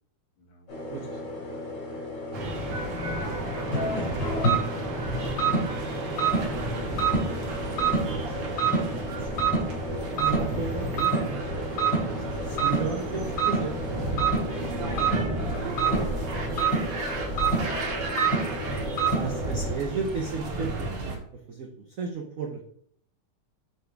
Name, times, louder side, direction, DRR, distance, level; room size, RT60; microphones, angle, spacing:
voice 1, 0.4-0.7 2.9-3.7 4.0-4.8 6.2-7.6 12.2-12.7 14.5-16.9 17.2-17.5, left 2 dB, 80° left, 0 dB, 2.6 m, -44 dB
sound 1, 0.7-19.7, right 3 dB, 55° left, 3.4 m, -29 dB
voice 2, 0.9-1.5 4.1-4.6 7.4-8.7 9.1-9.3 9.8-11.9 12.4-13.8 15.9-16.3 18.3-21.2 21.5-22.6, right 5 dB, 80° right, 2 dB, 0.7 m, -36 dB
sound 2, 2.3-21.2, right 2 dB, 55° right, 1.8 m, -32 dB
8.0 x 3.9 x 3.4 m, 0.65 s
omnidirectional pair, 2.4 m